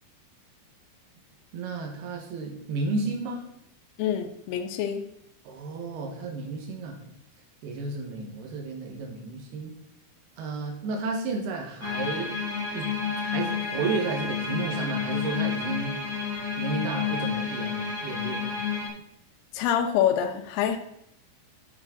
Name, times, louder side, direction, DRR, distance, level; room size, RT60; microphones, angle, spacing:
voice 1, 1.5-3.4 5.5-7.0 7.6-9.7 10.4-12.3 12.8-12.9 13.2-16.0 16.6-18.6, right 3 dB, 75° right, 1 dB, 3.5 m, -32 dB
voice 2, 4.0-5.0 19.5-20.8, left 9 dB, 80° left, 6 dB, 2.9 m, -26 dB
sound 1, 11.8-18.9, left 6 dB, 30° left, 2.9 m, -30 dB
9.9 x 7.5 x 3.9 m, 0.78 s
omnidirectional pair, 4.6 m